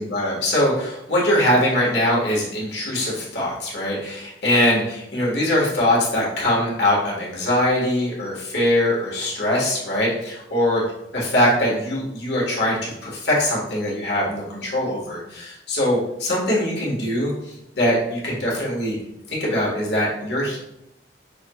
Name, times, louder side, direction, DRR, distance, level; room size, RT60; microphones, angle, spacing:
voice 1, 0.0-10.8 11.1-19.0 19.3-20.6, left 1 dB, 75° left, -4 dB, 1.5 m, -22 dB
6.0 x 3.0 x 2.3 m, 0.84 s
head